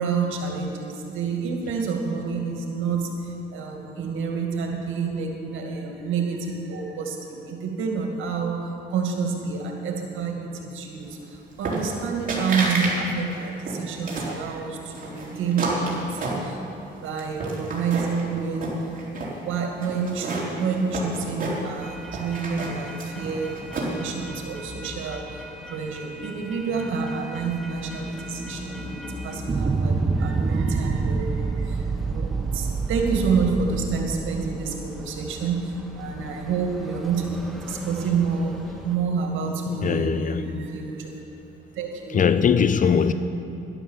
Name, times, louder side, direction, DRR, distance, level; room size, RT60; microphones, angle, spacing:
voice 1, 0.0-16.6 17.0-18.7 19.3-38.5 38.8-41.2 41.7-42.2, right 5 dB, 85° right, 1 dB, 2.2 m, -28 dB
sound 1, 11.7-12.0 12.3-12.9 13.3-14.4 14.9-16.8 17.2-18.2 18.6-19.3 19.8-21.9 22.1-24.1, right 2 dB, 45° right, 4.0 m, -29 dB
sound 2, 21.8-39.0, equal, ahead, 1.7 m, -39 dB
sound 3, 29.5-35.2, right 4 dB, 20° right, 0.6 m, -26 dB
voice 2, 39.7-40.7 42.1-43.1, left 7 dB, 40° left, 12 dB, 0.7 m, -21 dB
12.0 x 11.5 x 7.3 m, 2.7 s
cardioid pair, 90°, 20 cm